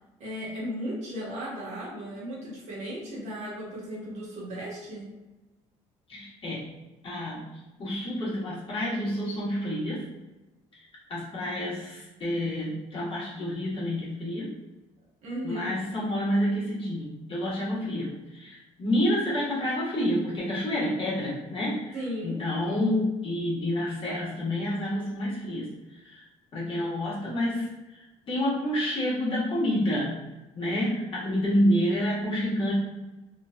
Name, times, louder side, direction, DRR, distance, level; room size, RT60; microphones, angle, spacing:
voice 1, 0.2-5.1 15.2-15.8 21.9-22.4, equal, 60° right, -5 dB, 1.2 m, -35 dB
voice 2, 6.1-6.6 7.0-10.1 10.7-14.5 15.4-22.0 22.2-26.2 26.5-30.2 30.5-32.7, left 1 dB, 40° left, -6 dB, 1.3 m, -29 dB
3.1 x 2.5 x 2.2 m, 1.1 s
cardioid pair, 100°, 13 cm